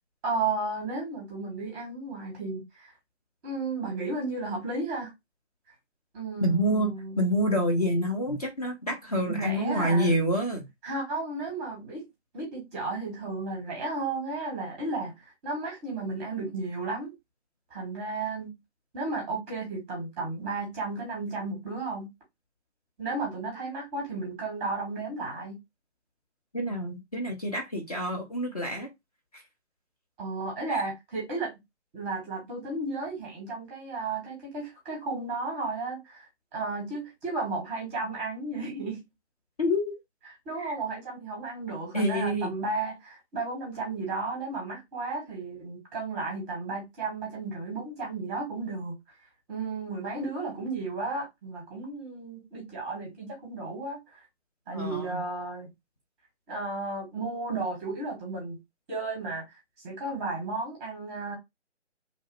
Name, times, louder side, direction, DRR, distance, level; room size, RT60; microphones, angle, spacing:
voice 1, 0.2-2.9 3.4-5.1 6.1-7.2 9.2-10.1 10.8-12.1 12.3-17.1 17.7-18.5 18.9-22.1 23.0-25.6 30.2-31.5 31.9-39.0 40.4-49.0 49.5-54.2 54.7-55.7 56.5-58.6 58.9-59.4 59.8-61.4, right 3 dB, 10° right, 0.8 m, -33 dB
voice 2, 6.4-10.6 26.5-28.9 29.3-29.4 30.7-30.8 39.6-40.0 40.6-40.7 41.9-42.5 54.7-55.2, equal, 35° left, 0.5 m, -27 dB
2.8 x 2.1 x 3.0 m
figure-of-eight pair, 145°, 35 cm